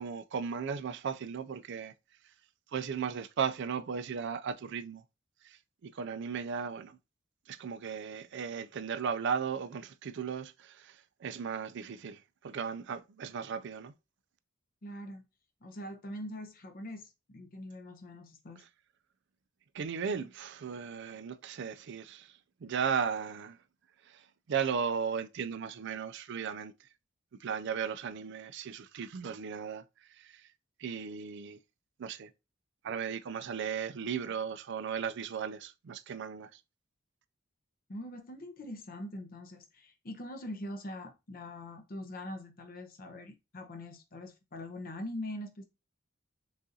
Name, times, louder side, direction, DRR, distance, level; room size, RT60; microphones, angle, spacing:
voice 1, 0.0-1.9 2.7-5.0 5.5-5.6 5.8-7.0 7.5-10.9 11.2-12.2 12.4-13.9 19.7-22.3 22.6-23.6 24.1-24.2 24.5-26.7 27.4-29.8 30.2-30.3 30.8-31.6 32.0-32.3 32.8-36.5, right 6 dB, 60° right, 0.4 m, -36 dB
voice 2, 14.8-15.2 15.6-18.6 37.9-45.6, left 1 dB, 45° left, 0.7 m, -43 dB
6.1 x 2.5 x 2.7 m
head